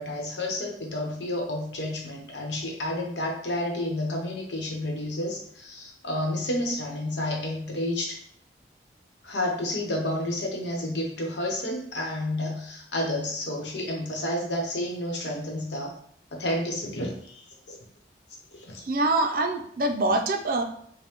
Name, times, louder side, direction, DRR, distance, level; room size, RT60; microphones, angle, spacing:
voice 1, 0.0-8.2 9.2-16.0 16.3-17.8 18.5-18.8, left 1 dB, 80° left, 0 dB, 1.0 m, -30 dB
voice 2, 18.8-20.6, right 2 dB, 50° right, 5 dB, 0.4 m, -25 dB
5.2 x 2.1 x 2.9 m, 0.66 s
head